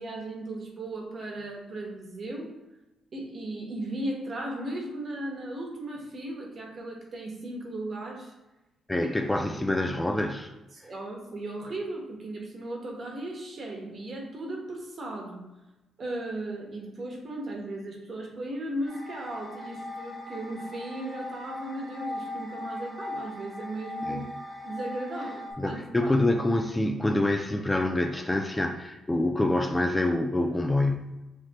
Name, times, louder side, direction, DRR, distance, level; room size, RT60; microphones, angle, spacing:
voice 1, 0.0-2.5 3.1-8.3 9.0-9.1 9.4-9.5 10.7-15.4 16.0-24.2 24.6-26.1, right 1 dB, 50° right, 0 dB, 1.1 m, -36 dB
voice 2, 8.9-10.5 24.1-24.3 25.6-31.2, left 1 dB, 15° left, 4 dB, 0.3 m, -26 dB
sound 1, 18.9-25.5, left 1 dB, 10° right, 1.2 m, -39 dB
5.0 x 2.9 x 2.9 m, 1.0 s
cardioid pair, 85°, 0 cm